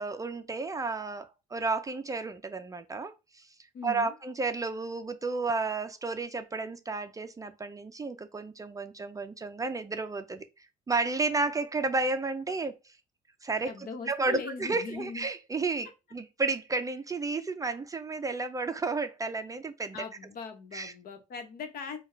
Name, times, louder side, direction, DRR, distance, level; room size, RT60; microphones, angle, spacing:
voice 1, 0.0-3.5 3.8-10.4 10.9-12.9 13.4-13.7 14.1-20.0 20.7-20.9, right 3 dB, 20° right, 0.4 m, -32 dB
voice 2, 3.7-4.1 13.6-15.3 19.9-22.0, left 5 dB, 60° left, 1.1 m, -40 dB
4.6 x 2.3 x 4.4 m
cardioid pair, 110°, 17 cm